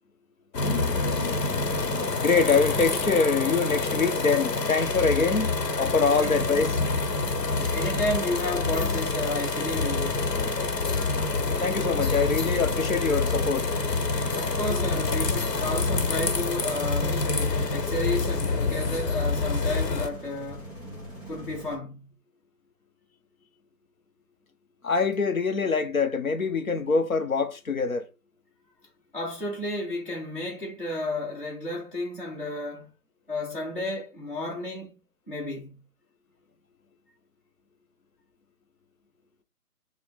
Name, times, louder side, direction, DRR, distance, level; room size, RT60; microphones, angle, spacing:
sound 1, 0.5-20.1, left 3 dB, 90° left, 0.9 m, -27 dB
voice 1, 2.2-6.7 11.6-13.7 24.8-28.1, left 4 dB, 60° left, 0.6 m, -24 dB
voice 2, 7.7-10.4 14.3-17.3 17.7-20.7 21.3-22.1 29.1-32.9 33.3-34.9 35.3-35.8, left 1 dB, 30° left, 1.0 m, -32 dB
sound 2, 11.2-21.8, equal, 10° left, 1.6 m, -42 dB
4.4 x 2.0 x 3.5 m
figure-of-eight pair, 175°, 48 cm